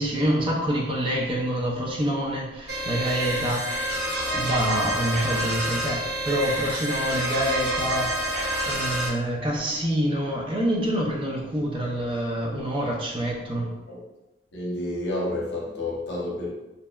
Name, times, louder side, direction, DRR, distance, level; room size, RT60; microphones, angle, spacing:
voice 1, 0.0-3.7 4.3-6.0 6.2-8.1 8.7-13.7, right 1 dB, 30° right, -2 dB, 0.4 m, -26 dB
sound 1, 2.7-9.1, right 1 dB, 75° right, 0.7 m, -28 dB
voice 2, 13.5-14.0 14.5-16.5, left 1 dB, 70° left, -4 dB, 0.7 m, -30 dB
2.7 x 2.1 x 2.2 m, 0.99 s
head